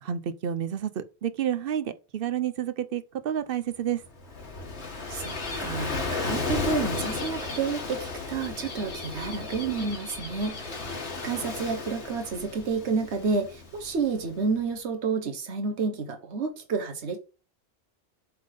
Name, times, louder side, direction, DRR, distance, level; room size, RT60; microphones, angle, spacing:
voice 1, 0.0-4.0, right 9 dB, 60° right, 0.8 m, -30 dB
Gull seagull / Waves surf, 4.0-14.5, left 3 dB, 75° left, 1.7 m, -34 dB
voice 2, 5.1-10.6 11.2-17.2, right 4 dB, 90° right, 1.3 m, -30 dB
7.5 x 3.7 x 5.1 m
omnidirectional pair, 1.1 m